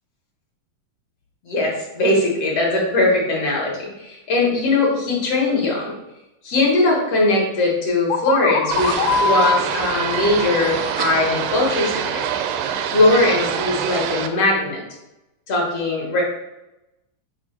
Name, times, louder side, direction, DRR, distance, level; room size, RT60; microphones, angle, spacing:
voice 1, 1.5-5.9 6.4-12.3 12.9-14.8 15.5-16.2, left 2 dB, 55° left, -3 dB, 1.9 m, -20 dB
sound 1, 8.1-11.9, left 4 dB, 85° left, 1.8 m, -24 dB
sound 2, 8.7-14.3, right 8 dB, 85° right, 1.9 m, -25 dB
6.9 x 2.7 x 5.7 m, 0.95 s
omnidirectional pair, 4.1 m